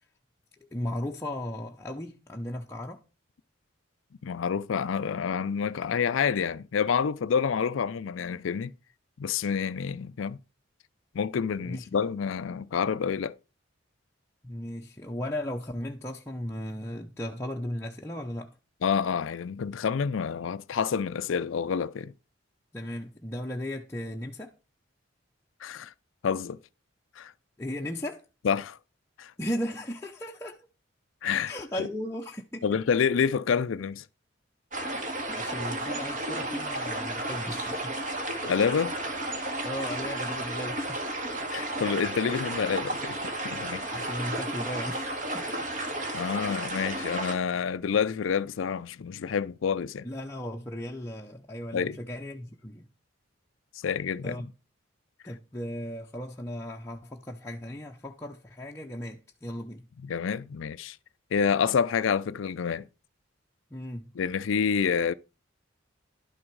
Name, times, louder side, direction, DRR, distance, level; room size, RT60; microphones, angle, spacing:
voice 1, 0.7-3.0 11.6-11.9 14.4-18.6 22.7-24.6 27.6-28.2 29.4-30.6 31.5-32.6 35.3-38.0 39.6-41.0 43.9-45.6 50.0-52.9 54.2-54.5 55.2-59.8 63.7-64.1, left 1 dB, 15° left, 0.7 m, -36 dB
voice 2, 4.2-8.7 9.2-10.4 11.1-13.4 18.8-22.1 25.6-25.9 26.2-26.6 27.2-27.3 28.4-28.8 29.2-29.3 31.2-31.5 31.8-31.9 32.6-34.0 38.5-39.0 41.5-43.2 43.4-43.8 46.1-50.1 51.7-52.0 53.7-54.4 60.0-61.0 61.3-62.9 64.1-65.1, left 6 dB, 80° left, 0.4 m, -28 dB
sound 1, 34.7-47.4, right 1 dB, 40° right, 1.8 m, -33 dB
11.5 x 6.2 x 4.6 m
head